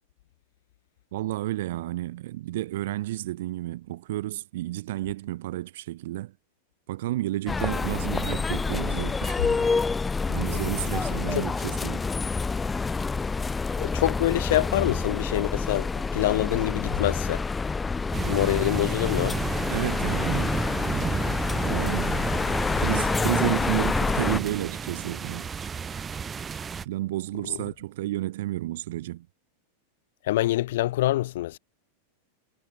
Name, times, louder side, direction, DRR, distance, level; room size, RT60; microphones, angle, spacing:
voice 1, 1.1-6.3 6.9-9.4 10.3-12.0 19.7-20.6 21.6-22.3 22.8-25.5 26.8-29.3, right 15 dB, 55° right, 0.9 m, -31 dB
sound 1, 7.5-24.4, left 4 dB, 15° left, 2.0 m, -27 dB
voice 2, 13.8-17.5 18.2-19.4 27.5-27.6 30.2-31.6, left 15 dB, 55° left, 2.1 m, -26 dB
sound 2, 18.1-26.8, right 6 dB, 20° right, 0.8 m, -32 dB
figure-of-eight pair, 90°, 0 cm